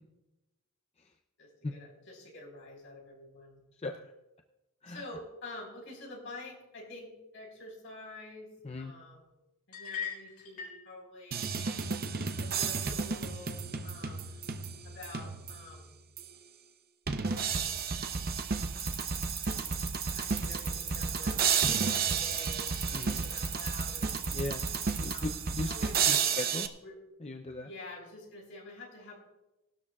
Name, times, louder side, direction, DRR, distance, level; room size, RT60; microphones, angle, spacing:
voice 1, 1.4-3.6 4.9-8.5 8.8-9.3 9.7-11.5 12.4-14.5 14.8-16.0 20.0-24.1 25.1-25.4 25.7-26.4 26.8-27.0 27.6-29.2, left 2 dB, 60° left, 0 dB, 4.5 m, -48 dB
sound 1, 9.7-10.8, left 7 dB, 85° left, 4.1 m, -39 dB
sound 2, 11.3-15.7 16.2-16.3 17.1-26.7, right 6 dB, 45° right, 0.7 m, -32 dB
sound 3, 18.8-25.2, right 6 dB, 20° right, 1.3 m, -39 dB
voice 2, 22.9-23.2 24.3-24.6 25.0-25.7 26.1-26.7 27.2-27.7, left 2 dB, 30° left, 5 dB, 0.5 m, -37 dB
19.0 x 12.5 x 2.4 m, 0.99 s
head